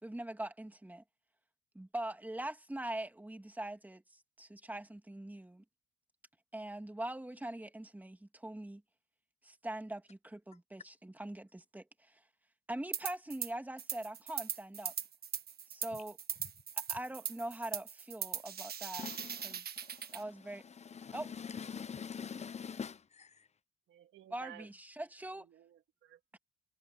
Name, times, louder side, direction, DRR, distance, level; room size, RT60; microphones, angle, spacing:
voice 1, 0.0-1.0 1.7-4.0 4.4-5.6 6.5-8.8 9.4-12.1 12.7-14.9 15.7-16.2 16.8-19.1 19.4-19.6 20.1-20.6 21.1-21.3 24.3-25.5 26.3-26.4, right 1 dB, 10° right, 2.6 m, -42 dB
sound 1, 12.9-13.5 13.8-20.2, right 8 dB, 50° right, 1.5 m, -40 dB
voice 2, 19.0-19.4 21.0-23.0, left 6 dB, 35° left, 0.8 m, -42 dB
voice 3, 23.9-24.7 25.4-26.4, right 11 dB, 75° right, 2.4 m, -55 dB
cardioid pair, 90°, 20 cm